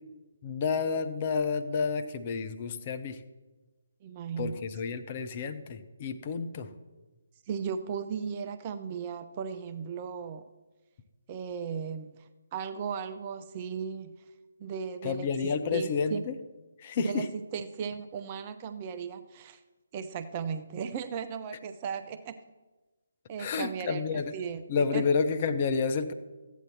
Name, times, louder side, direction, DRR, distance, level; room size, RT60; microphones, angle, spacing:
voice 1, 0.4-3.2 4.4-6.7 15.0-16.3 16.8-17.3 23.4-24.3 24.7-26.1, left 5 dB, 30° left, 8 dB, 0.9 m, -30 dB
voice 2, 4.0-4.7 7.5-10.4 11.3-12.2 12.5-14.1 14.6-16.2 17.0-17.2 17.5-19.6 19.9-22.4 23.3-25.0, right 6 dB, 25° right, 10 dB, 0.6 m, -36 dB
14.5 x 9.3 x 4.2 m, 1.2 s
figure-of-eight pair, 145°, 0 cm